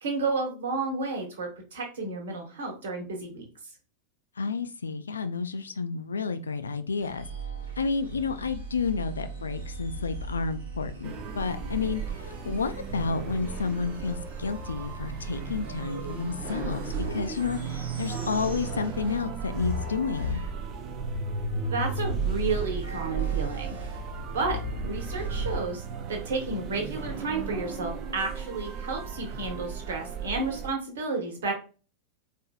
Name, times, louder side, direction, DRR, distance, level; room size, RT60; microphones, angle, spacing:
voice 1, 0.0-3.4 21.7-23.8 24.3-24.6 24.8-31.5, right 3 dB, 60° right, 2 dB, 1.2 m, -31 dB
voice 2, 4.4-7.3 7.8-20.4, left 5 dB, 70° left, 11 dB, 0.4 m, -31 dB
sound 1, 7.0-19.3 19.5-25.6, right 1 dB, 75° right, 1.4 m, -36 dB
sound 2, 11.0-30.7, right 7 dB, 35° right, 0.5 m, -36 dB
4.3 x 2.7 x 2.2 m, 0.35 s
figure-of-eight pair, 90°, 0 cm